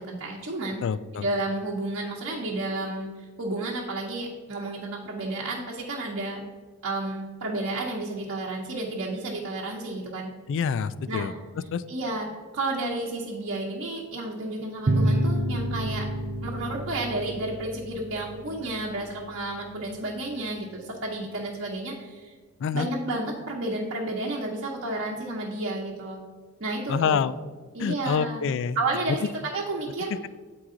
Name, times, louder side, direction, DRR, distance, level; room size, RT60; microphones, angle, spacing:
voice 1, 0.0-0.8 1.2-6.4 6.8-10.3 11.1-11.3 11.9-12.3 12.5-16.1 16.4-22.4 22.7-26.2 26.6-27.2 27.7-28.4 28.7-30.3, right 2 dB, 55° right, -5 dB, 0.9 m, -31 dB
voice 2, 0.8-1.3 10.5-11.3 11.7-11.8 22.6-22.9 26.9-27.3 27.8-28.8, left 6 dB, 60° left, 15 dB, 0.3 m, -26 dB
sound 1, 14.9-20.0, right 1 dB, 40° right, 0.5 m, -29 dB
8.4 x 4.7 x 3.8 m, 1.5 s
head